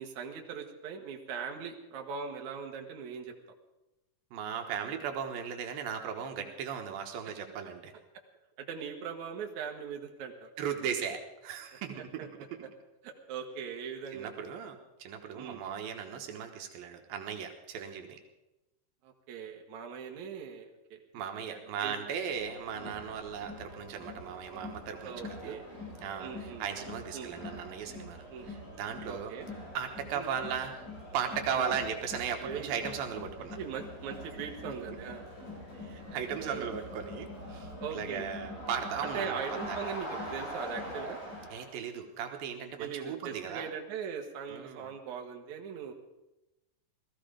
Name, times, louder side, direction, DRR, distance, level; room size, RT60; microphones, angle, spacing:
voice 1, 0.0-3.3 6.3-6.4 8.6-10.5 12.2-12.3 13.0-14.3 15.3-15.6 19.0-21.0 21.4-21.9 22.8-23.0 25.0-25.6 26.2-26.6 27.1-27.3 28.3-28.5 29.1-29.5 30.1-30.3 31.5-31.8 32.4-32.7 33.6-35.2 36.4-36.7 37.8-38.3 39.0-41.2 42.8-45.9, right 7 dB, 60° right, 2 dB, 2.5 m, -40 dB
voice 2, 4.3-7.9 10.6-12.3 14.1-18.2 21.1-25.6 26.0-29.3 29.7-30.8 31.1-33.6 35.8-39.4 39.7-39.8 41.5-43.7 44.5-44.9, right 7 dB, 80° right, 4 dB, 3.0 m, -37 dB
Crowd, 22.3-41.7, left 1 dB, 60° left, 7.0 m, -44 dB
18.0 x 14.0 x 5.1 m, 0.97 s
omnidirectional pair, 4.2 m